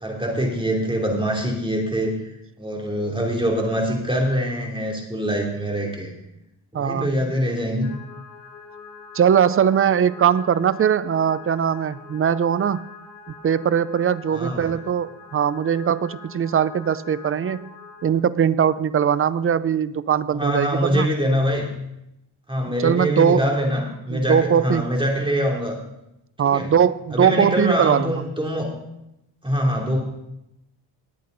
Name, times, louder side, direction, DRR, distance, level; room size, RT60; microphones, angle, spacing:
voice 1, 0.0-2.1 2.6-6.1 6.7-7.9 14.3-14.7 20.3-21.7 22.5-25.8 26.4-26.7 27.1-28.7 29.4-30.0, equal, 10° right, 0 dB, 2.9 m, -24 dB
voice 2, 6.7-7.2 9.1-12.9 13.4-17.7 18.0-21.1 22.8-23.5 24.1-24.9 26.4-28.2, right 8 dB, 30° right, 16 dB, 0.4 m, -20 dB
sound 1, 7.8-18.1, left 5 dB, 60° left, 2.5 m, -44 dB
19.5 x 8.5 x 3.9 m, 0.86 s
cardioid pair, 115°, 48 cm